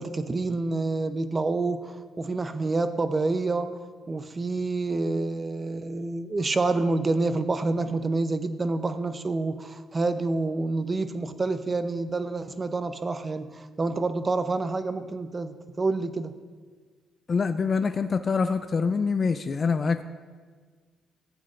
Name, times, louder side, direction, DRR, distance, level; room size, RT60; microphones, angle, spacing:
voice 1, 0.0-3.7 4.1-16.3, right 3 dB, 30° right, 11 dB, 0.6 m, -28 dB
voice 2, 17.3-20.0, left 5 dB, 40° left, 10 dB, 0.4 m, -25 dB
14.5 x 8.6 x 2.5 m, 1.5 s
cardioid pair, 90°, 0 cm